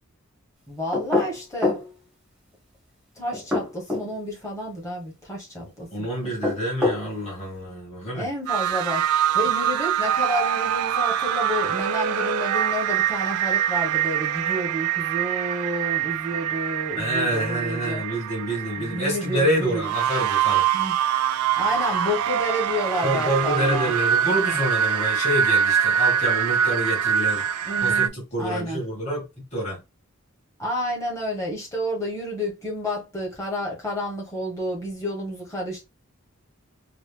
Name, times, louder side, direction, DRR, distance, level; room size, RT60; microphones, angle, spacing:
voice 1, 0.7-1.8 3.2-5.9 8.1-9.0 9.3-18.0 18.8-19.9 20.7-20.9 21.6-23.9 27.6-28.1 28.4-28.8 30.6-35.8, equal, 15° left, 1.2 m, -30 dB
sound 1, 0.9-1.9 3.3-4.1 6.2-7.1, left 3 dB, 5° right, 0.9 m, -25 dB
voice 2, 5.9-8.3 17.0-20.7 23.0-27.5 27.8-29.8, equal, 30° left, 1.9 m, -27 dB
sound 2, 8.5-28.1, right 9 dB, 85° right, 0.3 m, -24 dB
3.9 x 2.1 x 3.4 m
head